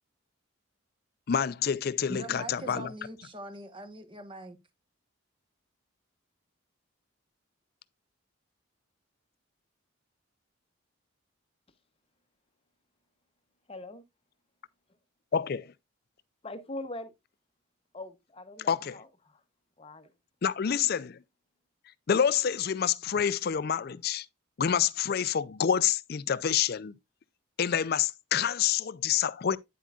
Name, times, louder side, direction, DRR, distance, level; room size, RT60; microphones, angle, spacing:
voice 1, 1.3-2.9 15.3-15.7 18.7-19.0 20.4-21.2 22.1-24.3 24.6-26.9 27.6-29.6, left 8 dB, 50° left, 0.4 m, -27 dB
voice 2, 2.1-4.6, right 1 dB, 25° right, 1.0 m, -42 dB
voice 3, 13.7-14.0 16.4-17.1 17.9-19.4 19.8-20.1, left 2 dB, 25° left, 0.8 m, -42 dB
9.5 x 7.4 x 2.3 m
head